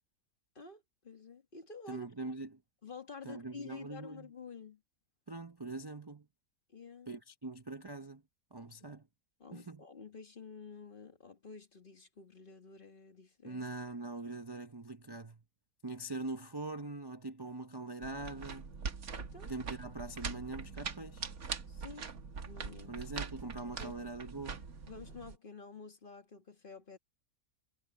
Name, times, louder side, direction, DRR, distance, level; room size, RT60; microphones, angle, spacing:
voice 1, 0.6-2.1 2.8-4.8 6.7-7.1 8.8-8.9 9.4-13.6 19.2-19.5 21.7-23.0 23.8-24.0 24.9-27.0, left 4 dB, 35° left, 1.8 m, -50 dB
voice 2, 1.9-2.6 3.2-4.3 5.3-6.3 7.1-8.2 8.5-9.0 9.5-9.8 13.4-15.4 15.8-18.7 19.4-21.2 22.9-24.6, right 2 dB, 20° right, 0.7 m, -43 dB
sound 1, 18.0-25.4, right 5 dB, 70° right, 1.9 m, -43 dB
omnidirectional pair, 1.6 m